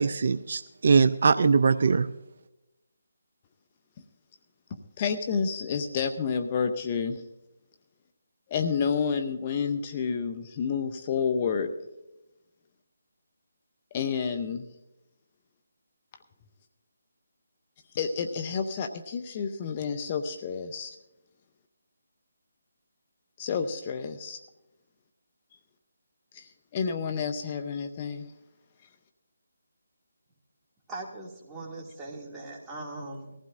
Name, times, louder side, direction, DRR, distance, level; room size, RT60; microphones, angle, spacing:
voice 1, 0.0-2.1, right 5 dB, 55° right, 12 dB, 0.5 m, -22 dB
voice 2, 4.7-7.2 8.5-11.7 13.9-14.7 17.9-21.0 23.4-24.4 26.3-28.3, left 6 dB, 30° left, 7 dB, 0.8 m, -30 dB
voice 3, 30.9-33.4, right 2 dB, 15° right, -3 dB, 2.4 m, -40 dB
20.5 x 15.0 x 2.6 m, 0.93 s
figure-of-eight pair, 155°, 0 cm